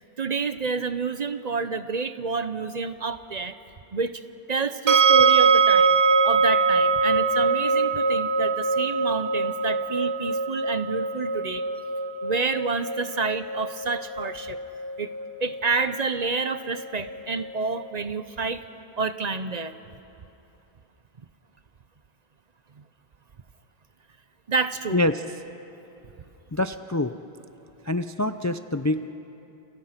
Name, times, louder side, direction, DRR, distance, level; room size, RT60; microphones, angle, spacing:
voice 1, 0.2-3.5 3.9-4.1 4.5-5.9 6.2-11.6 12.2-14.6 15.0-15.1 15.4-18.6 19.0-19.7 22.8-22.9 24.5-25.0, right 4 dB, 45° right, 11 dB, 0.9 m, -29 dB
sound 1, 4.9-17.8, right 4 dB, 85° right, 1.3 m, -23 dB
voice 2, 24.9-25.2 26.5-27.1 27.8-29.1, left 2 dB, 25° left, 10 dB, 0.4 m, -25 dB
29.0 x 29.0 x 5.9 m, 2.9 s
omnidirectional pair, 1.0 m